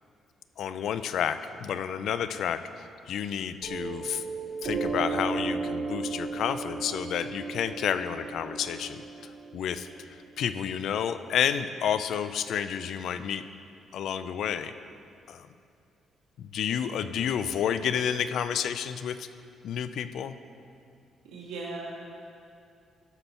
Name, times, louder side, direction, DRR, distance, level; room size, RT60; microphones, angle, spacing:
voice 1, 0.6-4.2 4.6-9.0 9.5-13.5 13.9-14.7 15.3-15.5 16.4-19.3 19.6-20.4, left 8 dB, 70° left, 12 dB, 0.5 m, -30 dB
Piano, 3.6-10.7, right 4 dB, 55° right, 2.4 m, -35 dB
voice 2, 17.0-17.3 21.3-21.9, right 3 dB, 90° right, -4 dB, 1.7 m, -39 dB
13.5 x 6.0 x 5.7 m, 2.4 s
cardioid pair, 90°, 0 cm